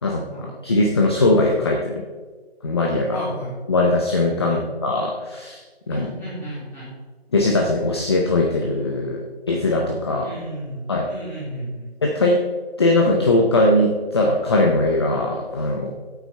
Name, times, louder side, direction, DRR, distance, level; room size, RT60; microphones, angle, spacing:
voice 1, 0.0-0.4 3.1-3.5 4.5-4.6 5.9-6.9 10.2-11.9, equal, 5° left, -9 dB, 3.0 m, -33 dB
voice 2, 0.6-2.0 2.6-3.3 3.7-5.6 5.9-6.1 7.3-10.3 10.9-11.1 12.0-12.4 12.8-15.9, left 2 dB, 25° left, 0 dB, 0.7 m, -20 dB
13.0 x 8.2 x 3.4 m, 1.4 s
figure-of-eight pair, 160°, 32 cm